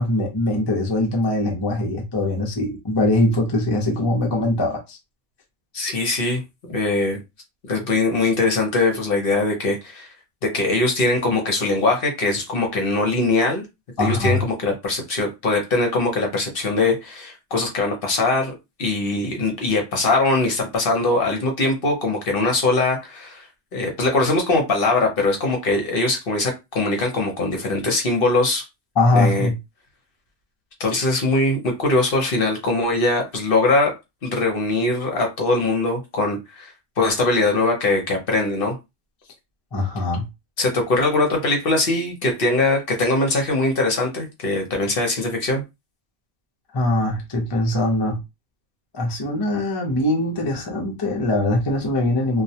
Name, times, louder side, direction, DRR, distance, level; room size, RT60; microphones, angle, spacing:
voice 1, 0.0-5.0 14.0-14.4 29.0-29.6 39.7-40.2 46.7-48.2 48.9-52.4, left 1 dB, 30° left, 0.5 m, -22 dB
voice 2, 5.7-7.2 7.7-10.1 10.4-13.6 14.0-18.5 18.8-23.5 23.7-28.6 29.1-29.5 30.8-33.9 34.2-38.8 40.6-45.6, left 2 dB, 55° left, 0.9 m, -21 dB
2.3 x 2.1 x 2.7 m
omnidirectional pair, 1.2 m